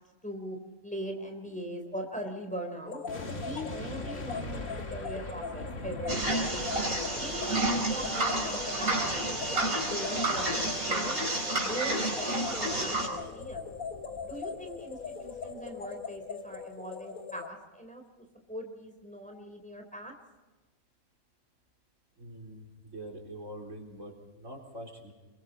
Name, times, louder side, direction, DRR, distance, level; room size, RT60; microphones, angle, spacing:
voice 1, 0.2-0.6 0.8-3.0 3.3-6.6 7.2-11.2 11.6-13.7 14.2-18.0 18.5-20.1, right 1 dB, 5° left, 3 dB, 3.8 m, -40 dB
sound 1, 2.9-17.5, left 5 dB, 75° left, 1.7 m, -41 dB
sound 2, 3.1-16.2 16.5-16.7, left 1 dB, 50° left, 2.2 m, -44 dB
sound 3, 6.1-13.1, right 2 dB, 80° right, 5.2 m, -30 dB
voice 2, 22.2-25.1, right 1 dB, 60° right, 0 dB, 4.4 m, -44 dB
29.5 x 23.0 x 4.2 m, 1.2 s
omnidirectional pair, 1.5 m